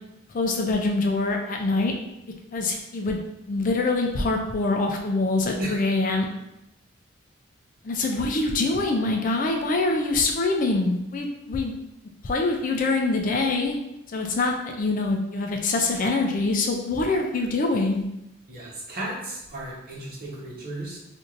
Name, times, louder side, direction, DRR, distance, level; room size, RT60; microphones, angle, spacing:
voice 1, 0.3-2.0 2.5-3.2 3.5-6.3 7.8-11.7 12.2-13.8 14.1-18.0, left 3 dB, 40° left, 2 dB, 0.4 m, -24 dB
voice 2, 18.5-21.0, right 1 dB, 45° right, -5 dB, 1.0 m, -34 dB
4.5 x 2.5 x 2.5 m, 0.88 s
head